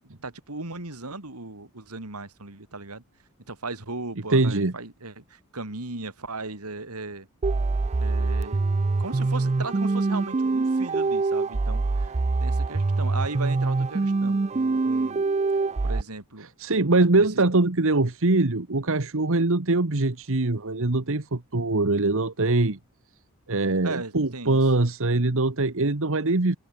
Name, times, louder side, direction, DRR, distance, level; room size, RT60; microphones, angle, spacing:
voice 1, 0.0-3.0 3.5-7.3 8.0-8.6 9.0-15.2 15.8-16.5 17.3-17.4 23.8-24.6, right 3 dB, 85° right, 3.5 m, -37 dB
voice 2, 4.3-4.7 16.6-22.8 23.5-26.6, right 2 dB, 65° right, 1.4 m, -22 dB
sound 1, 7.4-16.0, right 3 dB, 30° right, 0.4 m, -24 dB
head